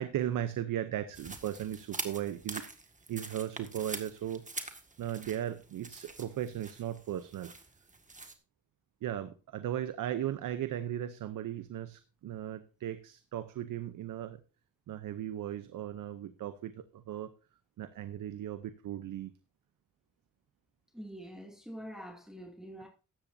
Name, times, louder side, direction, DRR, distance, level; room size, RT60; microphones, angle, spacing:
voice 1, 0.0-2.6 3.1-4.4 5.0-7.5 9.0-14.4 14.9-17.3 17.8-19.3, right 11 dB, 85° right, 0.7 m, -37 dB
sound 1, 1.1-8.3, right 3 dB, 25° right, 1.8 m, -45 dB
voice 2, 20.9-22.9, equal, ahead, 2.5 m, -45 dB
14.5 x 10.0 x 2.7 m
cardioid pair, 70°, 31 cm